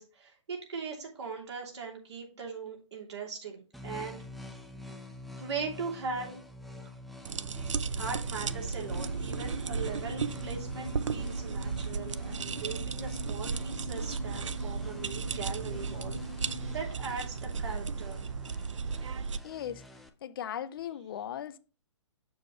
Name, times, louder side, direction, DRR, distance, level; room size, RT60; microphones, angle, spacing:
voice 1, 0.0-4.2 5.4-6.4 6.8-6.9 8.0-16.2 16.7-18.2, right 5 dB, 65° right, 2.8 m, -40 dB
sound 1, 3.7-20.1, left 1 dB, ahead, 0.3 m, -47 dB
sound 2, 7.2-19.4, right 5 dB, 80° right, 0.5 m, -35 dB
sound 3, 8.8-16.8, left 3 dB, 35° left, 1.2 m, -45 dB
voice 2, 19.4-19.8 20.2-21.6, left 10 dB, 50° left, 0.6 m, -38 dB
7.0 x 6.1 x 3.1 m
hypercardioid pair, 140°, 15 cm